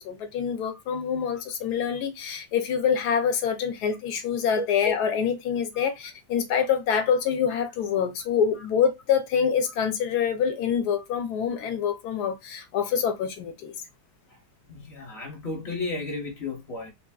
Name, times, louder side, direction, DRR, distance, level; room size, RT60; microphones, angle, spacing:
voice 1, 0.0-13.7, left 7 dB, 70° left, 1.1 m, -26 dB
voice 2, 14.7-16.9, left 2 dB, 45° left, 1.0 m, -33 dB
3.3 x 2.5 x 2.2 m
omnidirectional pair, 1.9 m